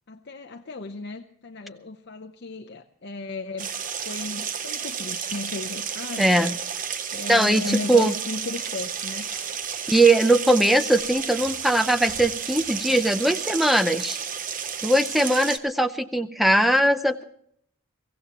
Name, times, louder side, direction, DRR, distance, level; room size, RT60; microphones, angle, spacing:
voice 1, 0.1-3.7 4.0-6.6 7.1-9.3, left 3 dB, 50° left, 5 dB, 0.7 m, -35 dB
sound 1, 3.6-15.6, right 7 dB, 35° right, 0.7 m, -32 dB
voice 2, 6.2-6.5 7.3-8.1 9.9-14.2 14.8-17.2, right 1 dB, ahead, 10 dB, 0.6 m, -20 dB
sound 2, 7.1-13.6, left 1 dB, 15° right, 5.9 m, -49 dB
23.5 x 16.0 x 2.9 m, 0.65 s
head